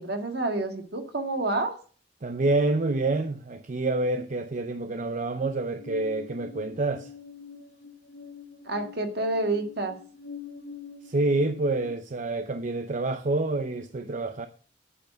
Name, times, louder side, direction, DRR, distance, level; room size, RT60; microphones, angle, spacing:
voice 1, 0.0-1.7 8.7-10.0, right 2 dB, 60° right, 1.8 m, -28 dB
voice 2, 2.2-7.1 11.0-14.5, right 2 dB, 45° right, 0.6 m, -27 dB
sound 1, 5.8-11.9, left 5 dB, 80° left, 1.3 m, -45 dB
9.2 x 8.5 x 6.4 m
head